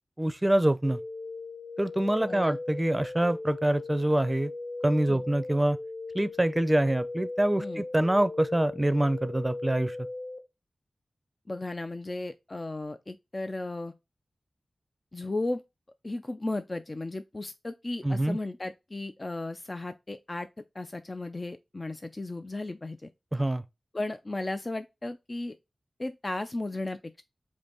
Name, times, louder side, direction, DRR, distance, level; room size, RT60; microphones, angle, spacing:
voice 1, 0.2-1.0 1.8-4.5 4.8-5.8 6.1-10.0 18.0-18.4 23.3-23.6, right 1 dB, 20° right, 0.5 m, -25 dB
sound 1, 0.8-10.4, left 2 dB, 85° left, 0.7 m, -38 dB
voice 2, 2.2-2.6 5.1-5.2 7.6-7.8 11.5-13.9 15.1-15.6 16.0-20.5 20.7-23.1 23.9-25.6 26.0-27.2, left 2 dB, 40° left, 0.4 m, -35 dB
5.1 x 2.6 x 3.9 m
cardioid pair, 45°, 0 cm